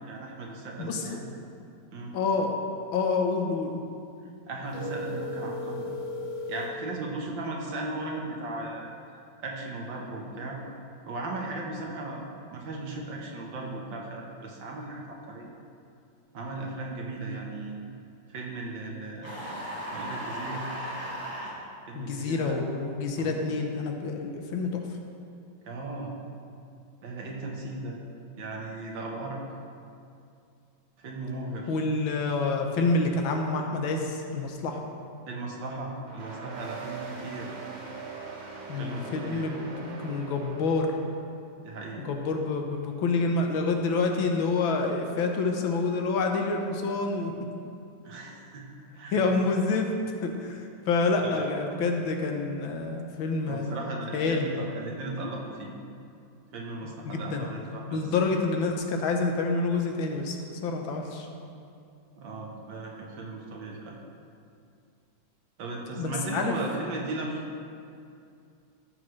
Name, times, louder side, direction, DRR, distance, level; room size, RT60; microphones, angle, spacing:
voice 1, 0.1-1.3 1.9-2.1 4.5-5.9 6.5-8.9 9.4-10.6 11.1-12.2 12.5-15.5 16.3-17.8 18.3-20.6 21.9-22.7 23.2-23.5 25.6-26.1 27.0-28.0 28.4-29.4 31.0-31.7 35.3-37.5 38.8-39.4 41.6-42.0 48.0-48.7 48.9-49.3 51.2-51.4 53.5-55.7 56.5-58.1 62.2-64.0 65.6-67.4, right 2 dB, 75° right, -1 dB, 1.9 m, -37 dB
voice 2, 2.1-2.6 2.9-3.8 21.9-24.8 31.7-34.9 38.7-40.9 42.0-47.3 49.1-49.9 50.2-53.8 54.1-54.4 57.0-57.5 57.9-60.4 60.6-61.3 66.0-66.6, left 3 dB, 85° left, 3 dB, 1.7 m, -28 dB
sound 1, 4.7-6.8, left 2 dB, 40° left, 2.2 m, -35 dB
sound 2, 19.2-21.5, equal, 5° left, 2.1 m, -36 dB
sound 3, 36.1-41.2, right 4 dB, 45° right, 0.6 m, -41 dB
14.5 x 6.5 x 3.2 m, 2.5 s
omnidirectional pair, 2.1 m